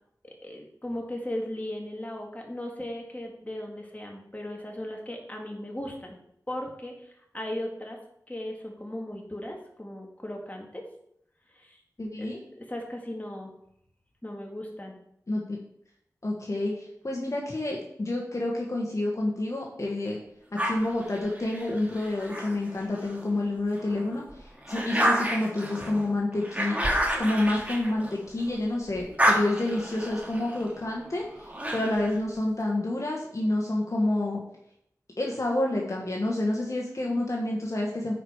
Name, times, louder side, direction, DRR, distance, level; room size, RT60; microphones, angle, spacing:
voice 1, 0.2-6.2 6.5-8.0 8.3-10.8 11.5-11.8 12.2-13.5 14.2-15.0, left 1 dB, 25° left, 0 dB, 2.1 m, -37 dB
voice 2, 12.0-12.4 15.3-15.6 16.2-20.2 20.5-34.4 35.2-38.1, left 1 dB, 50° left, -1 dB, 1.5 m, -29 dB
sound 1, 20.6-23.3 23.8-28.6 28.9-32.2, equal, 20° right, 2.1 m, -30 dB
9.8 x 4.8 x 4.8 m, 0.74 s
wide cardioid pair, 50°, 7 cm